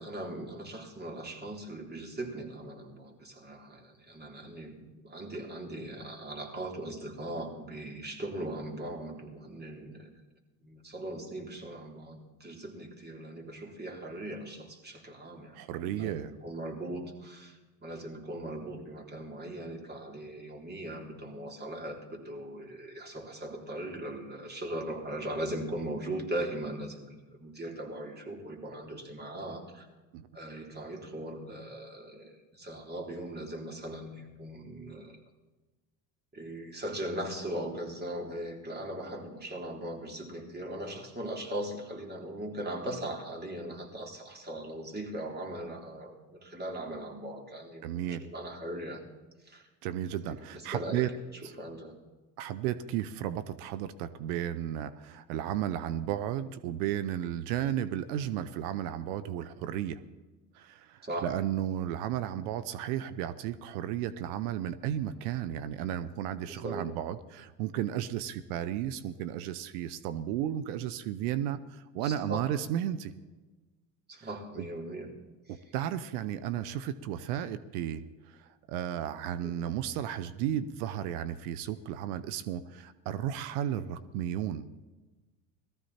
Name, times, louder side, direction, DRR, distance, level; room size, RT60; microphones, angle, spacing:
voice 1, 0.0-10.1 10.6-29.9 30.3-35.2 36.3-49.0 49.5-49.6 50.3-51.0 51.6-51.9 61.0-61.3 66.6-66.9 72.0-72.5 74.1-75.1 79.4-79.5, right 1 dB, 20° right, 1 dB, 3.7 m, -39 dB
voice 2, 15.5-16.3 30.1-30.3 47.8-48.2 49.8-51.1 51.4-51.6 52.4-60.0 60.5-73.1 74.2-74.3 74.6-74.7 75.5-84.7, right 11 dB, 70° right, 13 dB, 0.9 m, -34 dB
18.5 x 14.0 x 4.3 m, 1.2 s
hypercardioid pair, 75°, 47 cm